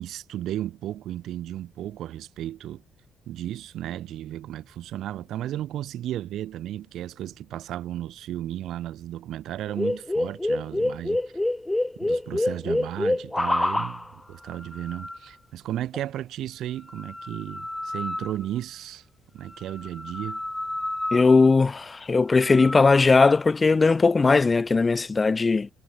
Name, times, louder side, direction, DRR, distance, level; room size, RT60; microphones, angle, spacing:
voice 1, 0.0-2.8 3.3-11.2 12.0-19.0 19.3-20.4, right 12 dB, 80° right, 2.8 m, -34 dB
sound 1, 9.7-14.1 14.5-15.2 15.9-16.0 16.9-18.4 19.6-21.5 22.4-22.8, left 1 dB, 10° left, 2.7 m, -28 dB
voice 2, 21.1-25.7, left 4 dB, 30° left, 0.5 m, -19 dB
cardioid pair, 90°, 0 cm